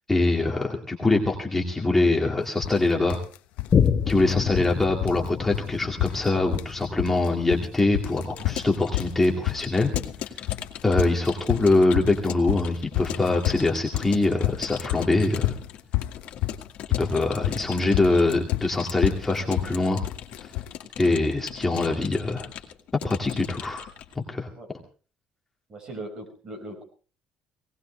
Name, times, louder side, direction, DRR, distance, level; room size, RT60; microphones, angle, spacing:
voice 1, 0.1-3.2 4.1-9.9 10.8-15.5 17.0-20.0 21.0-22.5 23.0-23.8 24.2-24.5, left 2 dB, 10° left, 0 dB, 2.1 m, -23 dB
sound 1, 2.6-2.8 3.1-3.7 4.0-4.7 5.0-5.3 5.5-5.7 6.0-6.7 7.0-7.7 7.9-20.8, left 17 dB, 90° left, 0.8 m, -29 dB
Boom, 3.7-10.6 11.1-11.2, left 7 dB, 35° left, 1.1 m, -29 dB
Keyboard (musical) / Computer keyboard, 8.1-24.2, left 10 dB, 60° left, 2.0 m, -39 dB
voice 2, 25.7-26.8, right 1 dB, 30° right, 4 dB, 5.3 m, -39 dB
19.5 x 18.5 x 3.3 m, 0.37 s
cardioid pair, 150°, 3 cm